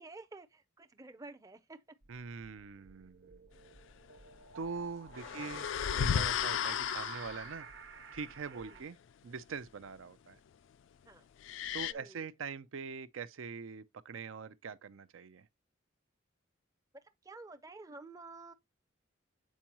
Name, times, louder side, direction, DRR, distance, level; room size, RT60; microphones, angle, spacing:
voice 1, 0.0-1.8 5.3-5.4 8.5-8.8 11.0-11.2 11.8-12.2 17.2-18.5, right 3 dB, 15° right, 0.4 m, -51 dB
sound 1, 2.0-8.8, right 5 dB, 60° right, 1.0 m, -52 dB
voice 2, 2.1-3.4 4.5-7.7 8.1-9.0 9.2-10.4 11.7-15.5, right 5 dB, 85° right, 0.5 m, -43 dB
sound 2, 5.1-7.5 11.4-11.9, left 8 dB, 65° left, 0.3 m, -34 dB
7.4 x 4.5 x 2.9 m
head